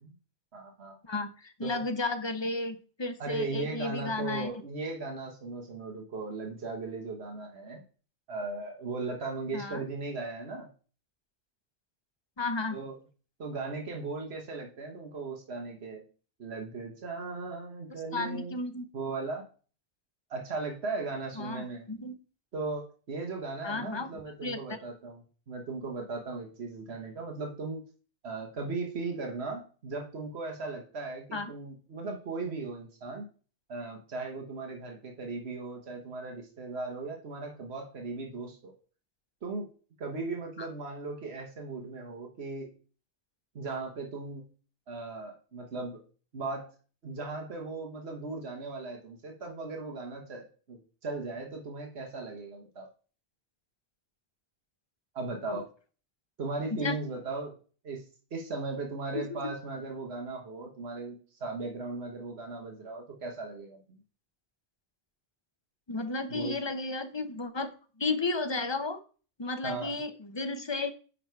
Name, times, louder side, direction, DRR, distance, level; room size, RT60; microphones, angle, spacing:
voice 1, 0.5-1.0 1.6-1.8 3.2-7.8 8.3-10.7 12.7-13.0 13.4-16.0 16.4-18.6 18.9-19.4 20.3-21.9 22.5-27.8 28.2-33.3 33.7-38.7 39.4-39.7 40.0-42.7 43.5-44.5 44.9-46.0 46.3-46.7 47.0-52.9 55.1-55.6 56.4-57.5 57.8-58.0 58.3-64.0 66.3-66.6 69.6-70.0, right 3 dB, 85° right, 1 dB, 1.5 m, -37 dB
voice 2, 1.0-4.5 9.5-9.8 12.4-12.8 18.1-18.8 21.4-22.1 23.6-24.1 24.4-24.8 31.3-31.5 40.6-40.7 55.5-55.6 56.8-57.0 59.1-59.4 65.9-67.7 68.0-69.0 69.4-70.9, left 3 dB, 30° left, 9 dB, 0.8 m, -33 dB
9.6 x 3.9 x 4.6 m, 0.38 s
omnidirectional pair, 1.1 m